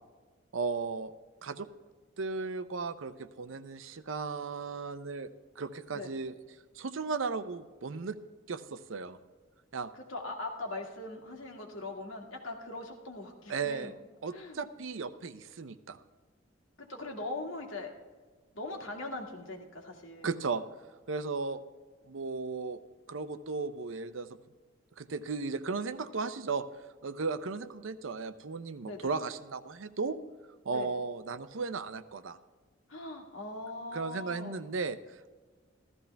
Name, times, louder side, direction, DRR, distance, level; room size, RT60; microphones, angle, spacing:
voice 1, 0.5-1.1 1.4-1.7 2.2-5.3 5.6-6.3 6.7-8.2 8.5-9.2 9.7-9.9 13.5-13.9 14.2-16.0 20.2-20.6 21.1-21.6 22.1-22.8 23.1-24.3 25.0-26.6 27.0-30.2 30.6-32.4 33.9-35.3, right 4 dB, 80° right, 12 dB, 0.7 m, -35 dB
voice 2, 9.9-13.9 14.3-14.6 16.8-17.9 18.5-20.3 28.8-29.2 30.7-30.9 32.9-34.7, left 2 dB, 85° left, 1 dB, 2.0 m, -41 dB
14.5 x 13.5 x 3.4 m, 1.4 s
head